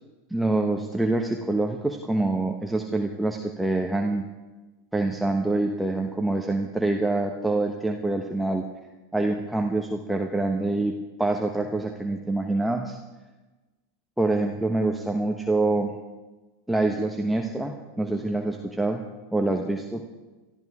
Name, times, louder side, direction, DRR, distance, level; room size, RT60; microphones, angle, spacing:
voice 1, 0.3-4.3 4.9-8.6 9.1-13.0 14.2-15.9 16.7-19.0 19.3-20.0, right 2 dB, 5° right, 3 dB, 1.3 m, -26 dB
24.5 x 14.0 x 3.7 m, 1.2 s
figure-of-eight pair, 85°, 0 cm